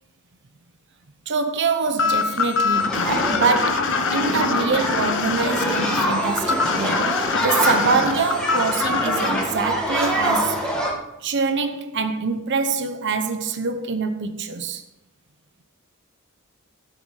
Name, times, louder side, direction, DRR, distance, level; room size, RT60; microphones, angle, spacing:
voice 1, 1.3-10.6 11.2-14.8, right 4 dB, 55° right, 0.9 m, -25 dB
sound 1, 2.0-9.4, left 5 dB, 60° left, 1.1 m, -24 dB
sound 2, 2.7-10.9, equal, 5° left, 2.2 m, -25 dB
12.5 x 6.8 x 6.5 m
head